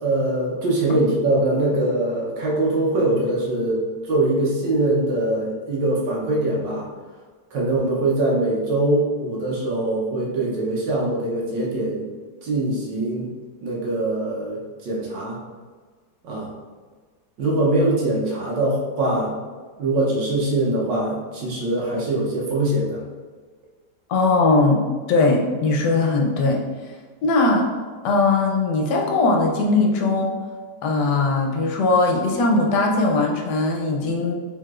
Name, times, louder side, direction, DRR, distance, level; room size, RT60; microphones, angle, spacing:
voice 1, 0.0-6.9 7.5-12.0 12.4-13.3 13.6-15.4 16.2-16.5 17.4-19.3 19.8-23.0, right 2 dB, 85° right, -4 dB, 1.5 m, -22 dB
voice 2, 24.1-26.6 27.2-27.7 28.0-30.4 30.8-34.3, left 3 dB, 75° left, 0 dB, 1.3 m, -20 dB
4.7 x 3.7 x 2.4 m, 1.5 s
omnidirectional pair, 1.9 m